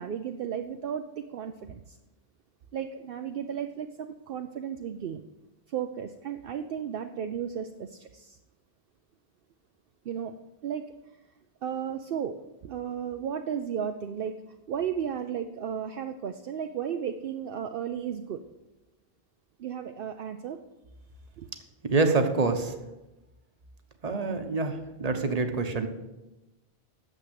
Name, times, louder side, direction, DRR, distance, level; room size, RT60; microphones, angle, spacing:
voice 1, 0.0-2.0 2.7-5.2 5.7-8.4 10.0-10.3 10.6-10.8 11.6-12.4 12.6-14.3 14.7-18.4 19.6-20.6 21.4-21.5, right 8 dB, 65° right, 6 dB, 0.8 m, -34 dB
voice 2, 21.9-22.7 24.0-25.9, right 3 dB, 40° right, 6 dB, 1.1 m, -26 dB
9.1 x 7.2 x 8.1 m, 1.0 s
omnidirectional pair, 1.0 m